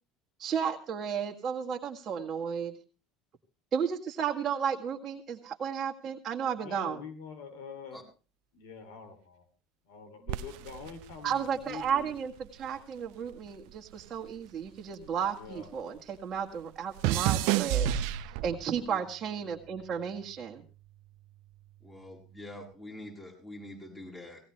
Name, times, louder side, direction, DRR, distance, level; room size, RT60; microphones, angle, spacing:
voice 1, 0.4-2.7 3.7-7.0 11.2-17.9 18.2-20.6, right 7 dB, 40° right, -1 dB, 1.7 m, -33 dB
voice 2, 6.6-8.0 8.5-9.4 9.9-12.1 15.3-15.7, left 6 dB, 75° left, 9 dB, 2.8 m, -45 dB
sound 1, 10.3-12.8 13.1-15.7 16.0-18.8 19.5-19.9, right 12 dB, 70° right, 0.7 m, -32 dB
voice 3, 21.8-24.4, left 1 dB, 20° left, 0 dB, 7.4 m, -45 dB
18.0 x 17.5 x 3.3 m, 0.35 s
hypercardioid pair, 90°, 0 cm